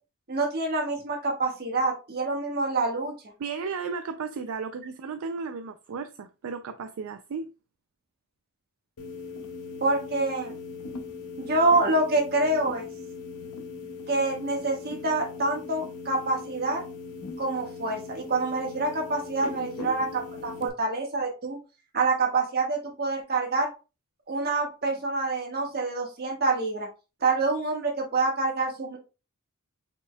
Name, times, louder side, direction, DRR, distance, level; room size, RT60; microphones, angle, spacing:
voice 1, 0.3-3.1 9.8-10.5 11.4-12.9 14.1-16.8 17.4-21.6 21.9-23.7 24.3-26.9 27.2-29.0, right 2 dB, 45° right, 1.4 m, -26 dB
voice 2, 3.4-7.5, right 5 dB, 65° right, 0.4 m, -34 dB
sound 1, 9.0-20.7, left 4 dB, 90° left, 0.7 m, -39 dB
5.1 x 4.2 x 2.2 m
head